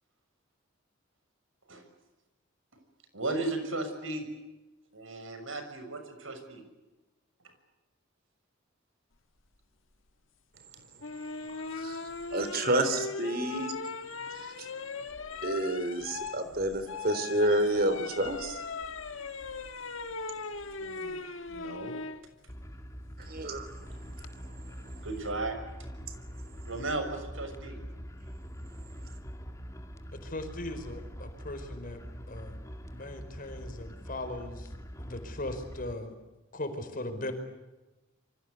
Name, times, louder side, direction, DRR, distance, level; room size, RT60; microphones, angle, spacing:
voice 1, 3.1-4.3 4.9-6.6 20.8-21.2 21.4-21.9 25.0-25.6 26.6-27.8, right 2 dB, 75° right, 7 dB, 6.6 m, -35 dB
sound 1, 11.0-22.2 23.9-24.3, left 4 dB, 75° left, 1.7 m, -39 dB
voice 2, 11.7-13.7 14.3-14.7 15.4-18.6 23.2-25.0, right 1 dB, 50° right, 11 dB, 3.7 m, -30 dB
sound 2, 22.5-35.9, equal, 15° left, 2.4 m, -44 dB
voice 3, 30.2-32.0 32.3-32.6 32.9-34.7 35.0-36.1 36.5-37.3, left 1 dB, 45° left, 7 dB, 4.7 m, -38 dB
28.5 x 24.5 x 8.2 m, 1.1 s
head